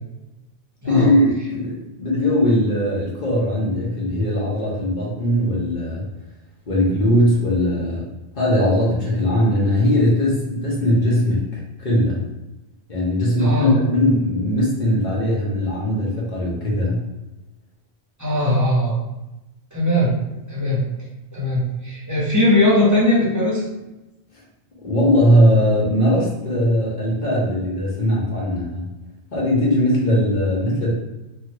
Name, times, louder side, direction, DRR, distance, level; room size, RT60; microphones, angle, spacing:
voice 1, 0.8-6.0 6.7-8.0 8.4-12.2 12.9-17.0 24.8-28.9 29.3-30.9, equal, 45° left, -5 dB, 1.1 m, -19 dB
voice 2, 13.4-13.7 18.2-19.0 19.7-20.1 20.5-20.8 21.3-23.6, left 1 dB, 20° right, -7 dB, 0.7 m, -19 dB
3.0 x 2.4 x 2.9 m, 0.99 s
omnidirectional pair, 1.1 m